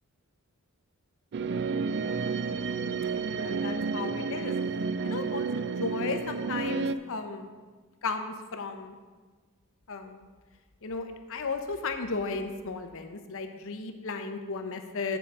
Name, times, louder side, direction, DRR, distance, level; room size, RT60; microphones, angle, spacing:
sound 1, 1.3-7.0, right 4 dB, 50° right, 0.4 m, -31 dB
voice 1, 3.3-4.5 5.0-5.5 5.8-7.5 8.0-9.0 9.9-10.3 10.8-15.2, left 4 dB, 65° left, 6 dB, 0.8 m, -34 dB
9.0 x 4.9 x 7.1 m, 1.4 s
head